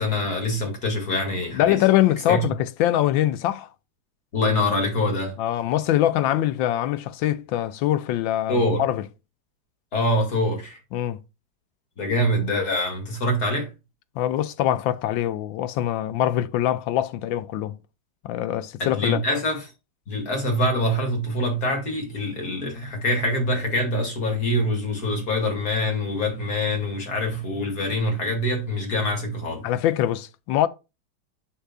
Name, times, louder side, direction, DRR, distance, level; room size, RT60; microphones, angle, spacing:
voice 1, 0.0-1.8 2.3-2.4 4.3-5.4 8.5-8.8 9.9-10.8 12.0-13.7 18.8-19.6 20.1-29.6, left 1 dB, 55° left, 2.7 m, -24 dB
voice 2, 1.5-3.7 5.4-9.1 10.9-11.2 14.1-17.8 18.2-19.2 29.6-30.7, left 12 dB, 85° left, 1.4 m, -23 dB
10.0 x 5.5 x 2.3 m
omnidirectional pair, 2.1 m